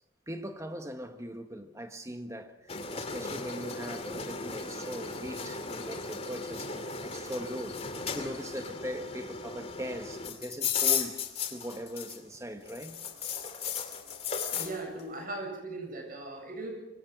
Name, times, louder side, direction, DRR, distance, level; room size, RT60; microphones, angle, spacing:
voice 1, 0.3-11.2 11.5-13.0, equal, 15° right, 1.7 m, -40 dB
sound 1, 2.7-12.4 12.6-14.7, left 6 dB, 30° left, 2.5 m, -35 dB
voice 2, 14.5-16.7, right 2 dB, 45° right, 7.9 m, -38 dB
26.0 x 24.0 x 6.2 m
head